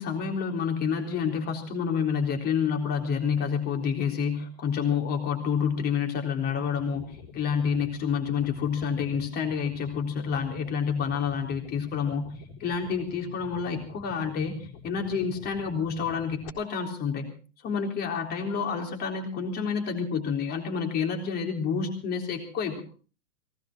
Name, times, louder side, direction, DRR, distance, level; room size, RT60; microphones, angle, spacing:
voice 1, 0.0-14.6 14.8-17.3 17.6-22.8, left 6 dB, 25° left, 3 dB, 3.7 m, -29 dB
sound 1, 6.5-16.5, left 5 dB, 45° left, 4.3 m, -47 dB
19.0 x 17.5 x 4.4 m, 0.38 s
hypercardioid pair, 145°, 39 cm